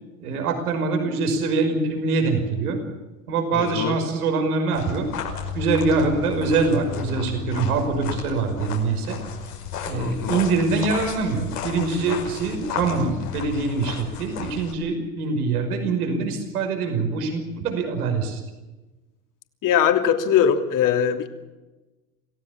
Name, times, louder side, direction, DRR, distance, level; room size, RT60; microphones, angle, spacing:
voice 1, 0.2-2.8 3.3-5.1 5.5-9.2 9.9-18.4, right 4 dB, 80° right, 5 dB, 5.7 m, -24 dB
voice 2, 3.5-4.0 10.0-10.4 19.6-21.3, left 8 dB, 45° left, 6 dB, 3.1 m, -21 dB
sound 1, 4.7-14.7, left 7 dB, 90° left, 5.5 m, -33 dB
27.5 x 16.5 x 7.3 m, 1.1 s
hypercardioid pair, 90°, 44 cm